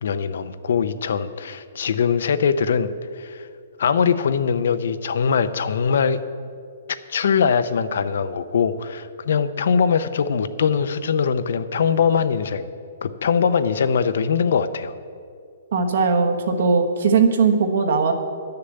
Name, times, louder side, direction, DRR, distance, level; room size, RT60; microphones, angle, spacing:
voice 1, 0.0-3.5 3.8-6.2 7.1-12.7 13.0-14.9, left 6 dB, 60° left, 12 dB, 0.6 m, -22 dB
voice 2, 15.7-18.1, right 5 dB, 55° right, 5 dB, 1.2 m, -19 dB
11.0 x 6.7 x 7.8 m, 2.3 s
hypercardioid pair, 175°, 0 cm